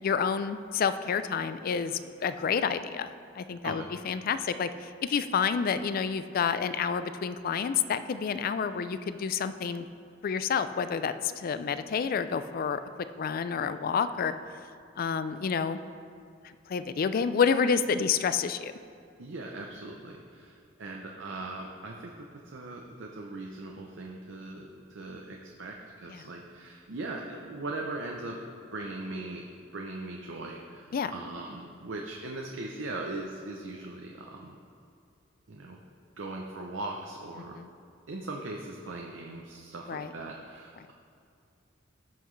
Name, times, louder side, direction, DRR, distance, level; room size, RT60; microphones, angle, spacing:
voice 1, 0.0-3.1 3.4-9.9 10.2-14.3 15.0-15.8 16.4-18.7 26.1-26.3 30.9-31.1 37.6-37.7 39.9-40.1, left 6 dB, 50° left, 12 dB, 0.3 m, -29 dB
voice 2, 19.2-28.4 28.7-29.4 29.7-34.6 35.5-35.8 36.2-37.6 38.1-40.9, right 2 dB, 75° right, 0 dB, 0.7 m, -39 dB
15.0 x 5.7 x 3.2 m, 2.4 s
head